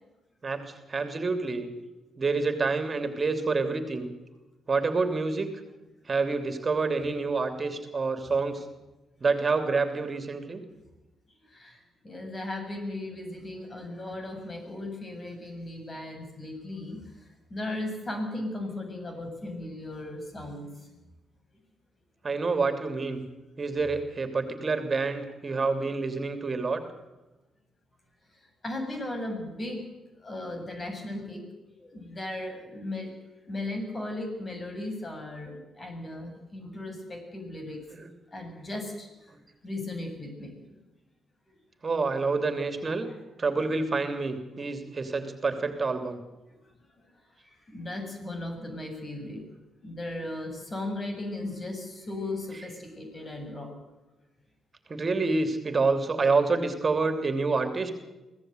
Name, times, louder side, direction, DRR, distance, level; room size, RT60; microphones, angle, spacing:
voice 1, 0.4-1.7 2.2-4.1 4.7-5.5 6.1-8.6 9.2-10.6 22.2-23.2 23.6-26.8 37.9-38.1 41.8-43.1 43.4-46.2 54.9-57.9, right 4 dB, 40° right, 8 dB, 3.0 m, -27 dB
voice 2, 11.5-17.2 17.5-21.0 28.6-29.8 30.2-33.1 33.5-37.8 38.3-39.1 39.6-40.8 43.0-43.1 47.5-49.4 49.8-53.7, left 1 dB, 35° left, 5 dB, 7.8 m, -37 dB
24.5 x 16.5 x 8.1 m, 1.1 s
hypercardioid pair, 40°, 0 cm